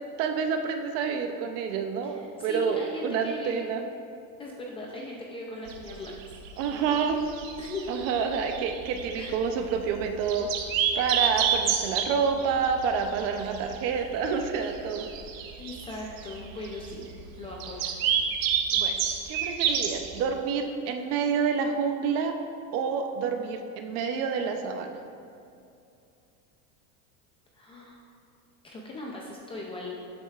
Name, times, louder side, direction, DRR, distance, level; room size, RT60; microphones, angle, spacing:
voice 1, 0.2-3.8 6.6-7.2 7.9-10.5 11.0-15.1 18.7-18.9 19.3-22.3 22.7-25.0, right 6 dB, 35° right, 5 dB, 0.6 m, -28 dB
voice 2, 2.0-3.6 4.4-6.1 6.7-6.8 7.6-8.1 9.1-9.4 15.6-17.1 17.4-17.9 27.5-28.1 28.6-30.1, left 2 dB, 15° left, -2 dB, 0.4 m, -39 dB
sound 1, 5.7-20.2, right 8 dB, 75° right, 1.0 m, -30 dB
12.0 x 7.9 x 2.4 m, 2.7 s
supercardioid pair, 160°, 41 cm